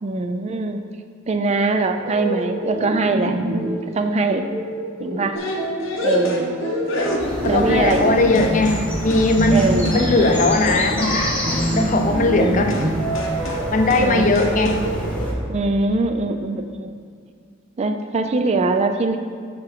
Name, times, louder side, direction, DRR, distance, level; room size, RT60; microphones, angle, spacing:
voice 1, 0.0-0.8 1.3-3.4 3.9-4.5 5.0-5.4 6.0-6.6 7.5-8.1 9.5-9.9 12.4-12.6 14.0-14.3 15.5-17.0 17.8-19.2, right 3 dB, 35° right, 6 dB, 0.3 m, -22 dB
sound 1, 2.0-15.4, right 1 dB, 65° right, 1.1 m, -27 dB
sound 2, 5.4-8.1 8.4-8.9 9.1-9.3 9.6-11.6 12.7-12.9 13.2-13.7 13.9-14.1 14.4-14.9, left 2 dB, 85° left, 1.0 m, -27 dB
sound 3, 7.2-15.3, equal, 5° left, 1.1 m, -28 dB
voice 2, 7.4-12.9 13.7-14.8, left 2 dB, 40° left, 5 dB, 0.6 m, -19 dB
7.7 x 3.7 x 5.9 m, 2.1 s
head